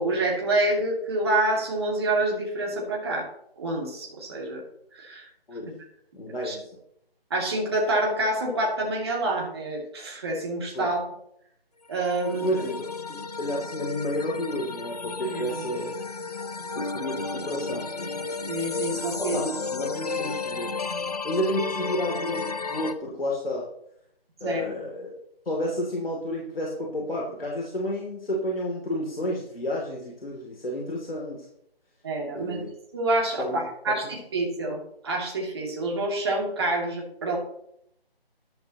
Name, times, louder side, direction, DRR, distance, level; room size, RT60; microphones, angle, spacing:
voice 1, 0.0-3.3 3.6-4.6 4.9-5.3 6.4-6.6 7.3-11.0 11.9-12.7 15.3-15.6 18.5-19.4 24.4-24.6 32.0-32.6 32.9-37.4, right 2 dB, 25° right, -1 dB, 2.6 m, -27 dB
voice 2, 6.1-6.7 10.7-10.9 12.4-12.8 13.4-16.0 16.7-18.1 19.2-20.8 21.2-23.6 24.4-25.1 25.4-31.5 32.3-32.7 33.4-33.6 33.9-34.1, equal, 70° left, -2 dB, 3.0 m, -31 dB
sound 1, 11.9-22.9, left 4 dB, 40° left, 0.7 m, -33 dB
13.0 x 11.5 x 3.0 m, 0.74 s
figure-of-eight pair, 165°, 30 cm